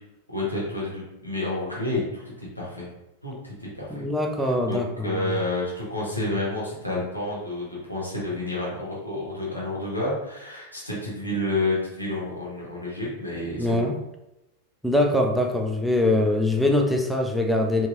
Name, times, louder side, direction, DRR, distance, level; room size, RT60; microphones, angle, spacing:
voice 1, 0.3-2.9 3.2-4.0 4.7-13.9, left 2 dB, 90° left, -6 dB, 1.0 m, -30 dB
voice 2, 3.9-5.4 13.6-13.9 14.8-17.9, left 1 dB, ahead, 1 dB, 0.3 m, -23 dB
2.9 x 2.6 x 2.4 m, 0.88 s
figure-of-eight pair, 90°, 0 cm